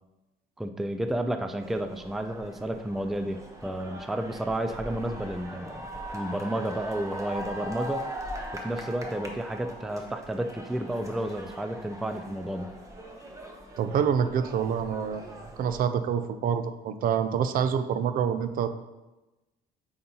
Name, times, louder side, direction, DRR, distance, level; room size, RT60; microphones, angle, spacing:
voice 1, 0.6-5.9 6.1-8.0 8.5-12.8, right 1 dB, ahead, 7 dB, 0.3 m, -31 dB
sound 1, 1.6-15.8, equal, 20° right, 1.0 m, -41 dB
voice 2, 13.8-18.7, right 7 dB, 60° right, 10 dB, 0.5 m, -27 dB
9.1 x 4.0 x 2.9 m, 1.0 s
cardioid pair, 110°, 17 cm